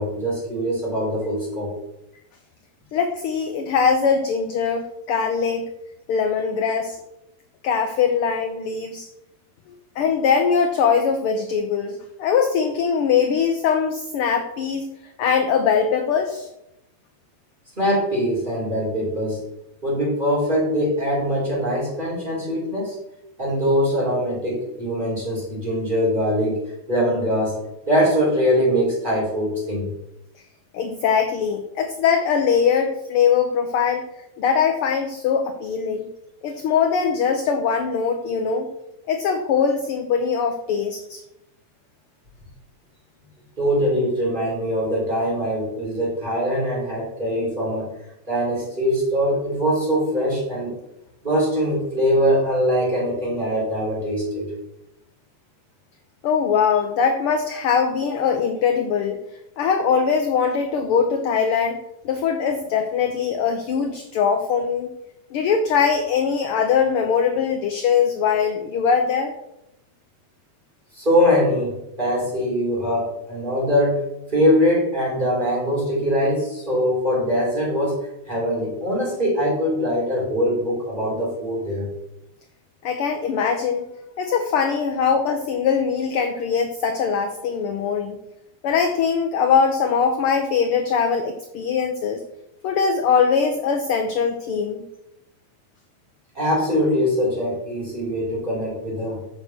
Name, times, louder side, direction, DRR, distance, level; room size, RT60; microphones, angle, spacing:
voice 1, 0.0-1.7 17.8-19.4 19.8-23.0 23.4-26.6 26.9-27.6 27.9-29.9 43.6-47.9 48.3-50.8 51.2-54.5 70.9-74.0 74.3-78.0 78.3-81.9 96.3-99.2, equal, 15° right, -5 dB, 3.9 m, -22 dB
voice 2, 2.9-5.7 6.1-7.0 7.6-9.1 10.0-14.9 15.2-16.5 30.7-34.0 34.4-36.1 36.4-38.7 39.1-41.2 56.2-59.2 59.6-61.8 62.0-64.9 65.3-69.3 82.8-83.8 84.2-88.2 88.6-92.2 92.6-94.8, left 6 dB, 70° left, 6 dB, 1.3 m, -21 dB
8.0 x 6.6 x 5.9 m, 0.85 s
omnidirectional pair, 3.3 m